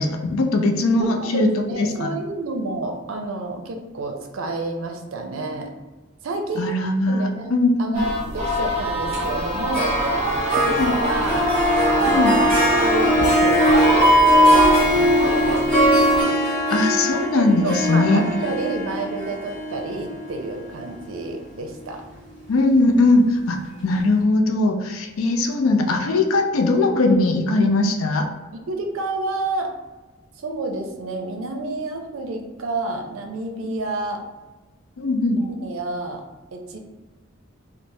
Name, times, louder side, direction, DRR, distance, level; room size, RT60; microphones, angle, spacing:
voice 1, 0.0-1.5 1.8-2.1 6.6-8.0 10.6-10.9 12.1-12.3 16.7-18.2 22.5-23.6 23.8-28.3 35.0-35.4, left 2 dB, 90° left, 4 dB, 0.4 m, -20 dB
voice 2, 1.0-5.7 6.2-6.7 7.1-11.5 11.9-15.6 17.3-22.0 28.5-29.7 30.4-34.2 35.4-36.2 36.5-36.8, right 2 dB, 80° right, 4 dB, 0.4 m, -29 dB
sound 1, 7.9-16.2, right 1 dB, 30° right, 0.8 m, -22 dB
Harp, 9.7-21.2, equal, 5° left, 1.2 m, -21 dB
3.2 x 2.0 x 2.6 m, 1.2 s
head